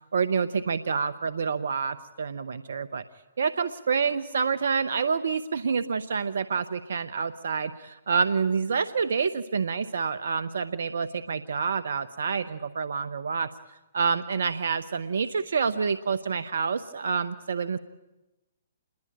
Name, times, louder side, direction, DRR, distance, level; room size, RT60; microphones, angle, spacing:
voice 1, 0.1-3.0 3.4-13.5 13.9-17.8, right 5 dB, 70° right, 13 dB, 1.0 m, -28 dB
28.0 x 21.5 x 8.8 m, 1.0 s
hypercardioid pair, 130°, 0 cm